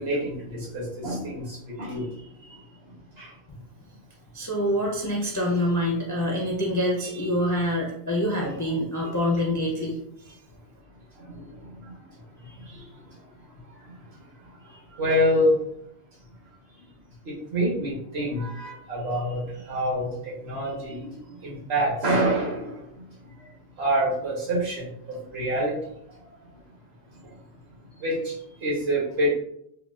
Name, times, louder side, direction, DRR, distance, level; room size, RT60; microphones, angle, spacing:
voice 1, 0.0-2.6 3.1-3.3 7.1-7.3 7.6-7.7 8.5-8.6 11.2-11.9 12.4-13.0 13.8-13.9 14.4-15.6 17.2-25.8 27.2-27.3 28.0-29.3, equal, 70° right, -4 dB, 1.3 m, -28 dB
voice 2, 4.3-10.0 10.3-10.4, left 1 dB, 30° left, -3 dB, 0.3 m, -26 dB
3.8 x 2.2 x 2.4 m, 0.73 s
omnidirectional pair, 1.1 m